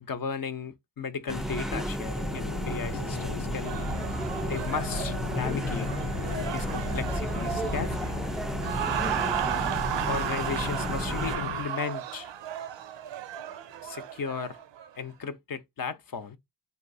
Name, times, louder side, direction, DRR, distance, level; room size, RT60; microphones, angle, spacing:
voice 1, 0.0-3.8 4.4-5.9 6.5-8.1 10.1-12.3 13.8-14.6 14.9-16.4, left 6 dB, 50° left, 0.6 m, -35 dB
sound 1, 1.3-11.4, equal, ahead, 0.4 m, -33 dB
sound 2, 2.3-11.6, left 4 dB, 90° left, 0.7 m, -37 dB
sound 3, 3.6-14.9, right 10 dB, 75° right, 0.5 m, -35 dB
3.2 x 2.8 x 2.6 m
cardioid pair, 45°, 44 cm